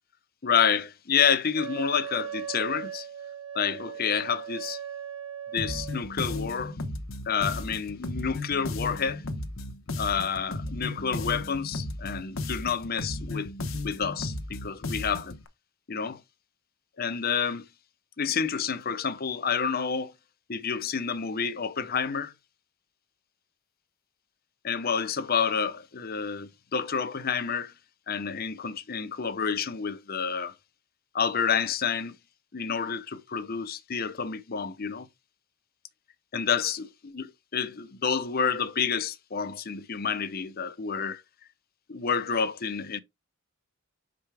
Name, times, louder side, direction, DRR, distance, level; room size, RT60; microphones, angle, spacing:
voice 1, 0.4-3.1 3.5-4.8 5.5-6.8 7.3-9.2 10.0-13.5 13.8-15.4 15.9-16.2 17.0-17.6 18.2-20.1 20.5-22.3 24.6-27.7 28.1-30.5 31.1-32.2 32.5-35.1 36.3-36.9 37.1-37.2 37.5-41.2 41.9-43.0, left 6 dB, 40° left, 0.6 m, -29 dB
Wind instrument woodwind instrument, 1.5-6.0, right 9 dB, 85° right, 1.1 m, -38 dB
sound 1, 5.6-15.4, left 2 dB, 65° left, 0.9 m, -35 dB
5.8 x 5.0 x 3.4 m
head